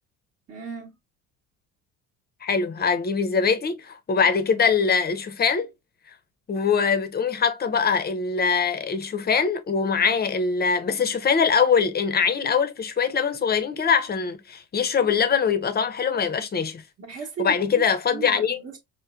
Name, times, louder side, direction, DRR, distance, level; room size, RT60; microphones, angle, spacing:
voice 1, 0.5-0.9 17.0-18.8, right 6 dB, 40° right, 0.9 m, -36 dB
voice 2, 2.4-5.7 6.5-16.8 17.4-18.6, left 6 dB, 25° left, 0.6 m, -23 dB
4.3 x 2.1 x 2.3 m
supercardioid pair, 80°, 36 cm